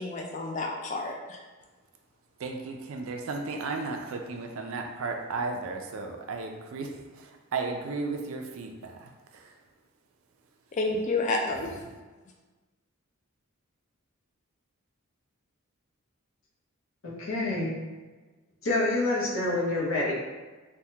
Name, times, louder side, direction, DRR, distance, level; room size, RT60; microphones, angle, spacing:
voice 1, 0.0-1.4 10.7-11.8, left 2 dB, 35° left, 1 dB, 0.3 m, -30 dB
voice 2, 2.4-9.5, right 3 dB, 70° right, 3 dB, 0.4 m, -35 dB
voice 3, 17.0-17.7 18.6-20.1, left 2 dB, 65° left, -5 dB, 0.8 m, -27 dB
3.4 x 2.2 x 2.7 m, 1.3 s
head